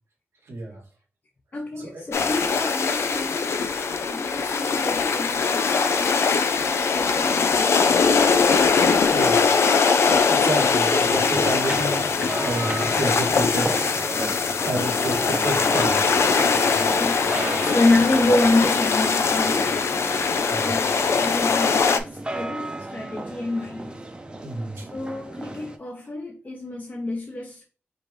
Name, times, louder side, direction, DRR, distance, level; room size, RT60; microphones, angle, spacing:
voice 1, 0.5-0.8 1.8-2.0 9.1-9.5 10.3-12.1 12.4-13.8 14.2-16.0 20.5-20.8 24.4-24.8, right 1 dB, 85° right, 1.6 m, -30 dB
voice 2, 1.5-3.7 4.1-8.2 10.8-11.0 16.8-17.3 17.6-19.7 20.6-24.0 24.9-27.6, left 2 dB, 40° left, 0.8 m, -27 dB
sound 1, 2.1-22.0, left 5 dB, 80° left, 0.4 m, -21 dB
sound 2, 11.1-25.8, right 2 dB, 20° right, 0.7 m, -34 dB
5.0 x 2.6 x 3.3 m
wide cardioid pair, 75°, 5 cm